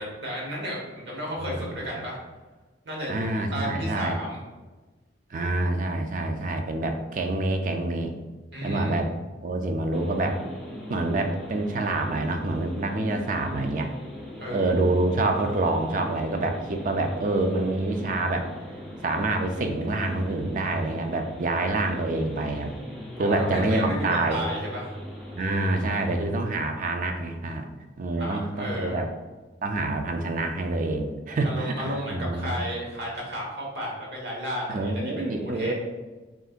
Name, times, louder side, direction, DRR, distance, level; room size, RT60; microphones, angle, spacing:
voice 1, 0.0-2.2 2.8-4.4 8.5-9.2 14.4-14.9 23.1-24.9 28.2-29.0 31.4-35.7, equal, 70° right, -3 dB, 1.2 m, -33 dB
voice 2, 1.5-1.8 3.1-4.2 5.3-8.1 8.6-9.1 9.4-10.4 10.9-13.9 14.5-18.5 19.0-22.8 23.2-24.4 25.3-27.7 28.0-29.1 29.6-32.5 34.7-35.7, right 2 dB, 45° right, 5 dB, 0.4 m, -27 dB
sound 1, 9.9-26.3, equal, 5° left, 0.7 m, -40 dB
6.5 x 2.5 x 2.4 m, 1.2 s
head